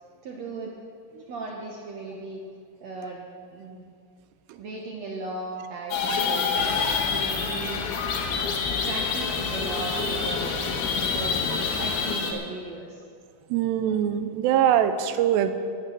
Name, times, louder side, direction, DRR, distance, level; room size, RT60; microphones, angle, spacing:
voice 1, 0.2-0.7 1.3-2.4 2.8-3.8 4.6-6.5 7.1-7.9 8.8-10.6 11.0-13.0, right 3 dB, 65° right, -1 dB, 1.7 m, -36 dB
sound 1, 5.9-12.3, left 5 dB, 60° left, 2.6 m, -27 dB
sound 2, 6.6-12.2, left 8 dB, 80° left, 2.7 m, -35 dB
voice 2, 13.5-15.5, right 10 dB, 85° right, 10 dB, 2.9 m, -23 dB
15.0 x 9.0 x 7.5 m, 2.2 s
omnidirectional pair, 4.8 m